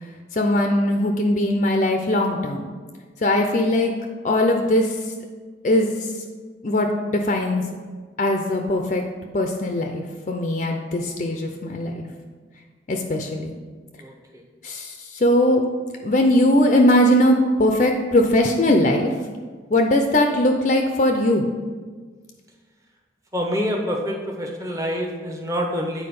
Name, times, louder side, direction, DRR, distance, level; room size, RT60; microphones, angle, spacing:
voice 1, 0.3-2.7 3.2-3.9 4.2-5.0 5.6-6.1 6.6-7.7 8.2-9.0 9.3-12.0 12.9-13.5 14.6-15.6 16.0-19.1 19.7-21.5, left 1 dB, 40° left, 3 dB, 0.5 m, -20 dB
voice 2, 23.3-26.1, equal, 15° right, 1 dB, 0.9 m, -26 dB
8.7 x 4.6 x 5.3 m, 1.5 s
head